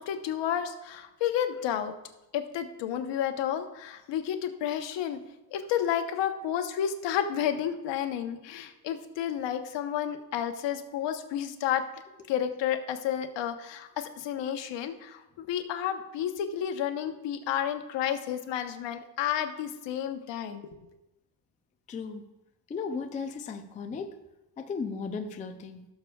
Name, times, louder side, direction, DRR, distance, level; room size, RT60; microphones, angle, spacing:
voice 1, 0.0-1.9 2.3-5.2 5.5-11.9 12.3-20.9, left 9 dB, 70° left, 7 dB, 1.0 m, -31 dB
voice 2, 21.9-22.2 22.7-24.2 24.6-25.8, left 5 dB, 20° left, 6 dB, 0.3 m, -35 dB
16.5 x 6.7 x 2.3 m, 0.96 s
cardioid pair, 160°, 45 cm